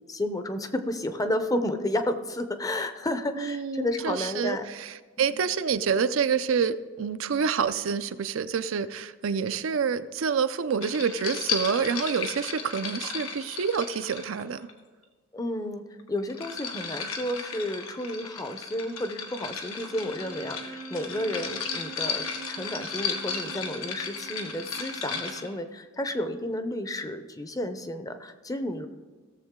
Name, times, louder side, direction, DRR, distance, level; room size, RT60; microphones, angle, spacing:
voice 1, 0.1-4.7 5.2-5.4 15.3-28.9, left 1 dB, 15° left, 9 dB, 0.6 m, -32 dB
voice 2, 3.4-4.9 5.2-14.7, right 6 dB, 70° right, 11 dB, 0.5 m, -27 dB
sound 1, 10.8-14.7 16.0-25.5, left 5 dB, 90° left, 1.4 m, -35 dB
Bowed string instrument, 19.7-25.5, right 4 dB, 75° left, 1.9 m, -45 dB
16.5 x 7.1 x 3.7 m, 1.4 s
head